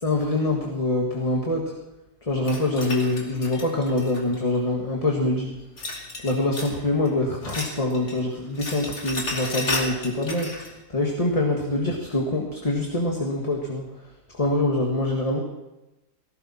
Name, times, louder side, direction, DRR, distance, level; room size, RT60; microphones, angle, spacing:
voice 1, 0.0-1.7 2.2-5.9 6.2-10.5 10.9-13.9 14.3-15.4, left 2 dB, 20° left, 0 dB, 1.7 m, -25 dB
sound 1, 2.4-4.6 5.8-6.8 7.1-8.2 8.4-10.7, left 2 dB, 60° left, 3.2 m, -33 dB
18.5 x 16.5 x 4.4 m, 1.0 s
omnidirectional pair, 1.8 m